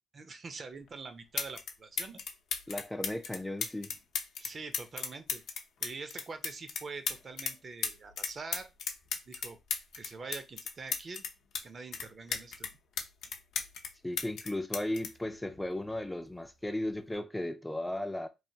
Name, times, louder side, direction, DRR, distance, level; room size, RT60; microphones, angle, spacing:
voice 1, 0.1-2.2 4.4-5.4 5.8-8.7 9.3-9.6 9.9-11.2 11.6-12.7, right 4 dB, 40° right, 0.5 m, -44 dB
sound 1, 0.9-1.0 1.4-1.7 2.0-7.5 7.8-11.6 11.9-13.9 14.2-16.0 16.9-17.2, left 6 dB, 70° left, 0.6 m, -36 dB
voice 2, 2.7-3.9 14.0-18.3, left 1 dB, 10° left, 0.3 m, -35 dB
3.1 x 2.2 x 2.7 m
cardioid pair, 90°, 0 cm